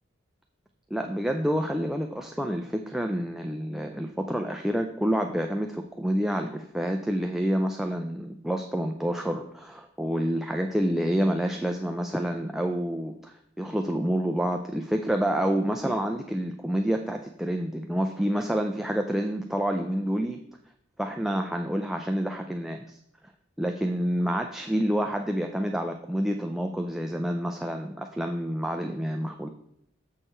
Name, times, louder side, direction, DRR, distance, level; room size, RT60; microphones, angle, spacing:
voice 1, 0.9-20.4 21.0-23.0 23.6-29.5, equal, ahead, 3 dB, 0.4 m, -28 dB
6.6 x 6.5 x 4.3 m, 0.73 s
head